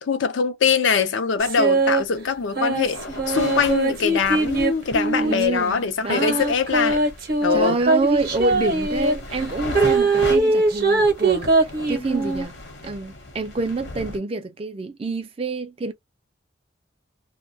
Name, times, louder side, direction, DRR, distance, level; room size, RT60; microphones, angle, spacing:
voice 1, 0.0-3.0 3.3-7.0 7.4-7.8, left 6 dB, 75° left, 0.5 m, -22 dB
sound 1, 1.4-2.0 2.6-5.5 6.1-9.2 9.7-12.5, right 3 dB, 50° right, 0.7 m, -21 dB
sound 2, 2.7-14.2, left 2 dB, 60° left, 0.8 m, -37 dB
voice 2, 5.2-6.4 7.5-12.6 12.8-15.9, right 3 dB, 30° right, 0.3 m, -27 dB
2.2 x 2.1 x 2.6 m
head